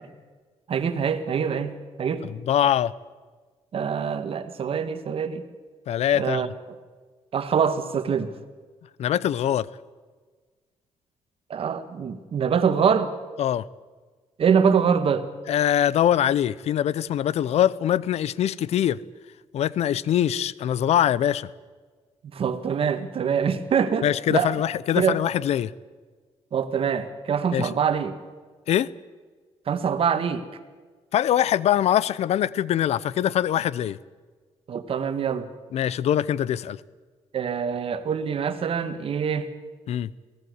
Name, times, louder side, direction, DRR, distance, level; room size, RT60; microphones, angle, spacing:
voice 1, 0.7-1.7 2.0-2.3 3.7-5.4 6.1-6.5 7.3-8.3 11.5-13.1 14.4-15.3 22.3-24.5 25.0-25.2 26.5-28.1 29.7-30.4 34.7-35.5 37.3-39.5, right 7 dB, 55° right, 10 dB, 1.7 m, -24 dB
voice 2, 2.2-2.9 5.9-6.5 9.0-9.7 13.4-13.7 15.5-19.0 19.5-21.5 24.0-25.7 27.5-27.7 28.7-28.9 31.1-34.0 35.7-36.8 39.9-40.1, left 10 dB, 75° left, 20 dB, 0.6 m, -23 dB
23.0 x 16.5 x 8.0 m, 1.4 s
cardioid pair, 105°, 11 cm